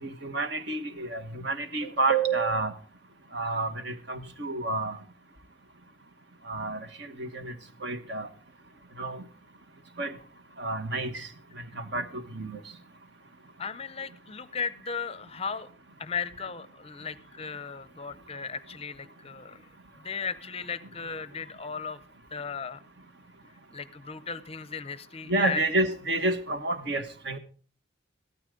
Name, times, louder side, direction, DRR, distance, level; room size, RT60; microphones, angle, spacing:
voice 1, 0.0-2.7 3.3-5.0 6.5-7.5 7.8-8.3 9.0-9.2 10.0-10.1 10.6-11.3 11.8-12.6 25.3-27.4, right 2 dB, 55° right, 9 dB, 1.3 m, -29 dB
voice 2, 13.6-15.7 16.0-19.6 20.0-22.0 22.3-22.8 23.7-25.6, left 5 dB, 30° left, 16 dB, 0.6 m, -36 dB
14.5 x 13.0 x 3.8 m, 0.41 s
head